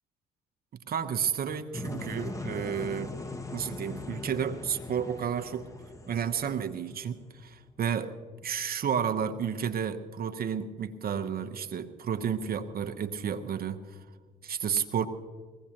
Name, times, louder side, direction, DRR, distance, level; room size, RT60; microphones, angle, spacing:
voice 1, 0.9-3.2 3.5-5.7 6.1-8.1 8.4-14.0 14.4-15.1, right 8 dB, 45° right, 9 dB, 1.0 m, -31 dB
sound 1, 1.7-7.6, left 2 dB, 15° left, 1.2 m, -40 dB
21.5 x 16.5 x 3.0 m, 1.5 s
figure-of-eight pair, 45°, 21 cm